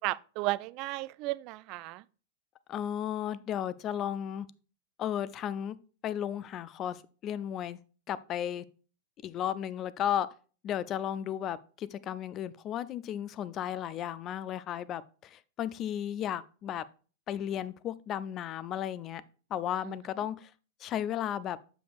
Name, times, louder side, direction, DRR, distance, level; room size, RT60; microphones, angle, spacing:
voice 1, 0.0-2.0 19.8-19.9, right 20 dB, 45° right, 0.3 m, -34 dB
voice 2, 2.7-4.5 5.0-5.8 6.0-7.8 8.1-8.6 9.2-10.3 10.6-16.8 17.3-19.2 19.5-20.5 20.8-21.6, left 10 dB, 35° left, 0.4 m, -34 dB
7.5 x 6.9 x 2.4 m
figure-of-eight pair, 95°, 0 cm